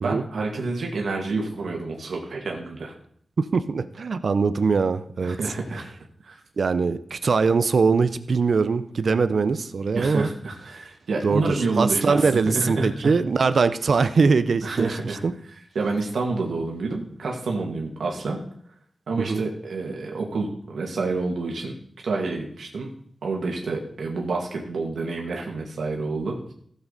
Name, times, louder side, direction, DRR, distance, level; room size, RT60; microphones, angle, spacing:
voice 1, 0.0-2.9 5.2-5.8 6.2-6.4 9.9-12.2 12.5-13.1 14.6-15.2 15.8-18.4 19.1-21.7 22.0-22.9 23.2-26.5, right 3 dB, 85° right, 0 dB, 2.0 m, -28 dB
voice 2, 3.4-5.4 6.6-10.3 11.2-15.0 15.2-15.3 19.2-19.4, right 4 dB, 60° right, 12 dB, 0.7 m, -22 dB
15.5 x 7.4 x 4.1 m, 0.63 s
wide cardioid pair, 115°, 0 cm